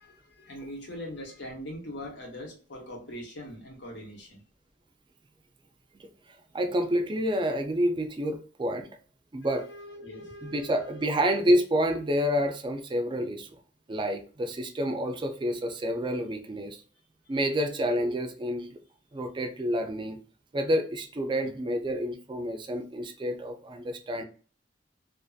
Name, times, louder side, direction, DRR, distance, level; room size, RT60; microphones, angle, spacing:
voice 1, 0.0-4.4 9.4-11.2 21.4-21.6, equal, 75° left, 0 dB, 1.0 m, -42 dB
voice 2, 6.5-8.9 9.3-9.6 10.4-13.5 13.9-16.8 17.3-18.8 19.1-20.2 20.5-24.2, equal, 25° right, 6 dB, 0.4 m, -28 dB
2.6 x 2.5 x 2.3 m, 0.39 s
head